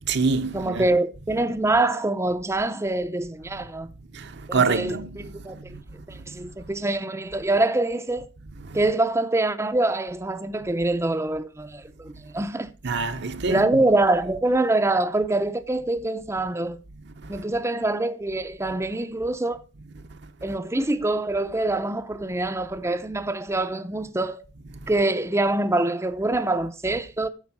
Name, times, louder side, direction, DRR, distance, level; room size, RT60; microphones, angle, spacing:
voice 1, 0.0-0.9 4.1-5.8 6.1-6.4 8.6-8.8 12.8-13.7 17.2-17.4 24.8-24.9, right 4 dB, 65° right, 0.9 m, -27 dB
voice 2, 0.5-3.9 4.5-5.0 5.2-5.6 6.1-8.3 8.7-12.7 13.5-16.8 17.3-19.6 20.4-24.4 24.9-27.3, right 2 dB, 15° right, 0.6 m, -25 dB
9.7 x 6.7 x 6.0 m
head